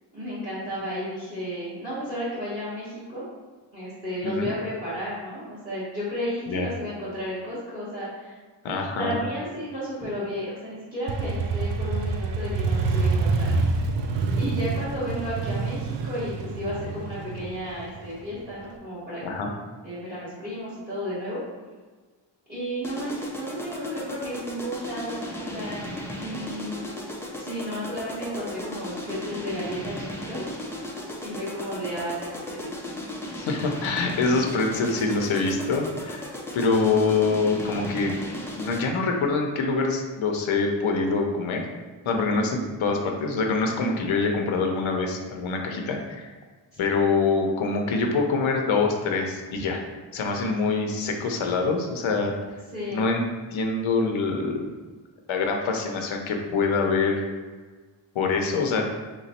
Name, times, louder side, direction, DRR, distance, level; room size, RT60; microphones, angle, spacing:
voice 1, 0.1-3.2 3.7-8.4 9.0-13.5 14.3-19.2 19.8-21.4 22.5-25.8 26.1-26.9 27.4-30.4 31.2-33.0 42.0-42.4 46.7-46.9 52.7-53.1, equal, 20° right, -12 dB, 1.3 m, -33 dB
voice 2, 8.6-9.2 19.2-19.5 33.4-36.3 36.5-38.1 38.6-41.6 42.1-46.3 46.8-49.8 50.1-52.3 52.9-53.2 53.5-54.6 55.3-57.3 58.1-58.8, left 4 dB, 90° left, 2 dB, 0.7 m, -25 dB
Motorcycle, 11.1-18.7, right 3 dB, 65° right, 0.5 m, -27 dB
sound 1, 22.8-39.0, left 1 dB, 5° left, 0.4 m, -36 dB
3.5 x 3.1 x 4.1 m, 1.4 s
wide cardioid pair, 165°, 46 cm